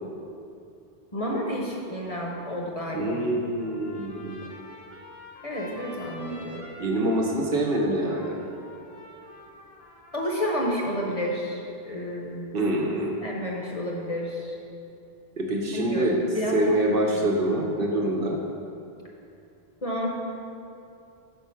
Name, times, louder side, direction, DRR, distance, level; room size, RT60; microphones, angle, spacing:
voice 1, 1.1-3.2 5.4-6.7 10.1-11.6 11.9-12.6 13.2-14.6 15.6-16.7 17.1-17.3 19.8-20.1, equal, 40° left, -2 dB, 0.8 m, -30 dB
voice 2, 2.9-4.4 6.8-8.4 12.5-13.2 15.4-16.2 16.5-18.4, right 1 dB, 65° right, -1 dB, 1.0 m, -25 dB
Trumpet, 3.6-11.2, left 1 dB, 80° left, 1.3 m, -47 dB
6.3 x 4.7 x 5.6 m, 2.6 s
omnidirectional pair, 1.0 m